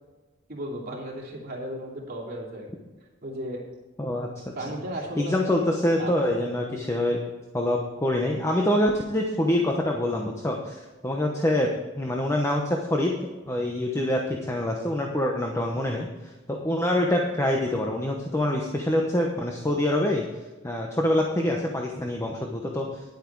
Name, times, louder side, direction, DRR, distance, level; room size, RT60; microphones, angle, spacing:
voice 1, 0.5-2.8 3.2-3.6 4.5-5.7 6.0-6.1 6.4-6.5, right 1 dB, 45° right, -2 dB, 3.0 m, -35 dB
voice 2, 5.2-7.2 7.5-11.7 12.0-16.1 16.5-20.2 20.6-23.0, left 1 dB, 15° left, 0 dB, 1.0 m, -25 dB
10.5 x 9.0 x 4.7 m, 1.2 s
head